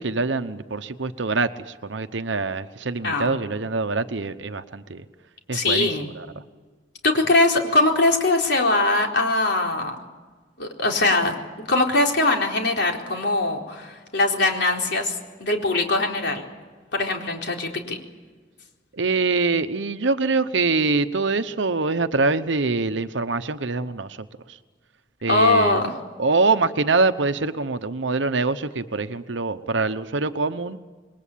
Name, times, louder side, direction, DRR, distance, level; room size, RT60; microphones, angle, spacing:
voice 1, 0.0-5.0 5.5-5.9 6.1-6.3 18.9-24.2 24.5-24.6 25.2-25.8 26.2-30.8, right 3 dB, 70° right, 9 dB, 1.0 m, -24 dB
voice 2, 3.0-3.4 5.5-6.1 7.0-9.9 10.6-16.4 16.9-18.0 25.3-26.0, left 2 dB, 60° left, 1 dB, 4.1 m, -21 dB
27.5 x 21.5 x 8.6 m, 1.4 s
head